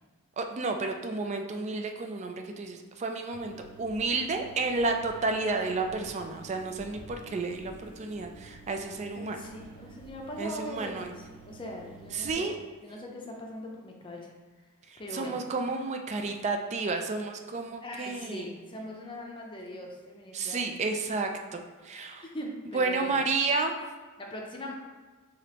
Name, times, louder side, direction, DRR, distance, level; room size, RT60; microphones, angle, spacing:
voice 1, 0.4-9.4 10.4-11.1 12.1-12.5 14.9-18.5 20.3-22.2 22.7-23.7, right 3 dB, 30° right, 4 dB, 0.3 m, -31 dB
sound 1, 3.3-12.3, right 4 dB, 80° right, 0.6 m, -50 dB
voice 2, 9.1-12.5 12.8-14.3 15.0-15.4 17.8-20.8 22.1-23.2 24.2-24.7, left 1 dB, 25° left, -1 dB, 0.6 m, -41 dB
4.9 x 2.9 x 2.9 m, 1.4 s
head